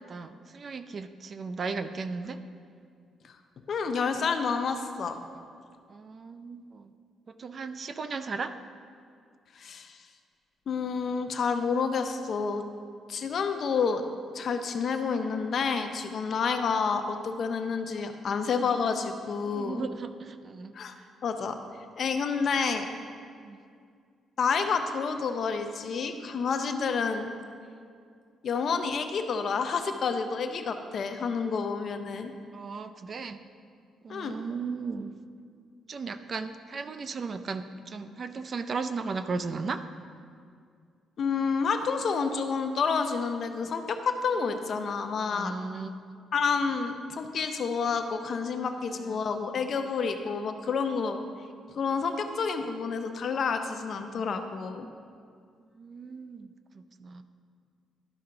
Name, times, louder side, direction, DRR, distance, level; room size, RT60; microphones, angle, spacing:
voice 1, 0.1-2.4 5.9-6.9 7.3-8.6 19.4-20.7 23.4-23.6 32.5-33.4 34.0-35.1 35.9-39.8 45.3-45.9 49.0-49.2 55.7-57.2, right 4 dB, 45° right, 10 dB, 0.4 m, -36 dB
voice 2, 3.7-5.2 9.5-10.0 10.7-12.6 13.1-14.0 14.3-19.8 20.7-20.9 21.2-21.6 22.0-22.9 24.4-27.3 28.4-32.3 34.1-34.4 41.2-45.5 46.3-51.2 51.7-54.9, left 5 dB, 55° left, 7 dB, 0.6 m, -29 dB
12.0 x 5.6 x 3.8 m, 2.2 s
cardioid pair, 90°, 0 cm